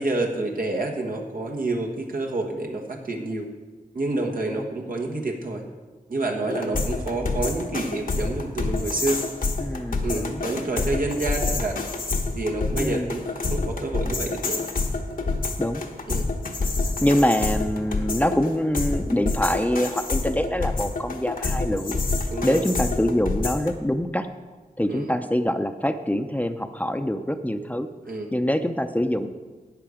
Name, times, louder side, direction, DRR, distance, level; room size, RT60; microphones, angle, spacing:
voice 1, 0.0-3.5 3.9-5.6 6.1-9.2 10.0-11.8 12.3-14.6 16.1-16.3 22.3-22.6 24.9-25.1 28.1-28.3, right 2 dB, 75° right, 1 dB, 1.3 m, -28 dB
sound 1, 6.5-23.7, left 3 dB, 75° left, 1.2 m, -27 dB
voice 2, 9.6-10.5 12.8-13.1 15.6-15.8 17.0-22.0 22.4-24.3 24.8-27.9 28.3-29.3, equal, 10° left, 8 dB, 0.6 m, -25 dB
12.0 x 8.2 x 5.0 m, 1.3 s
cardioid pair, 55°, 14 cm